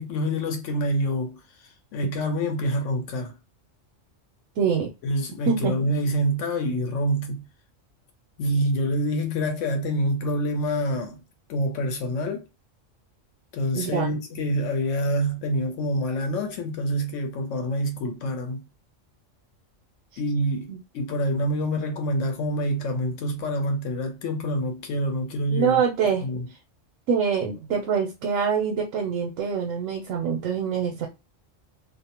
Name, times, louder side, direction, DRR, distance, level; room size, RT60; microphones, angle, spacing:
voice 1, 0.0-1.4 1.9-3.4 5.0-7.5 8.4-11.2 11.5-12.5 13.5-18.7 20.2-25.8 26.2-26.5, equal, 75° left, 1.0 m, -26 dB
voice 2, 4.6-4.9 5.5-5.7 13.8-14.1 20.7-20.8 25.5-26.3 27.1-31.1, right 6 dB, 80° right, 1.0 m, -25 dB
2.5 x 2.0 x 2.8 m
omnidirectional pair, 1.3 m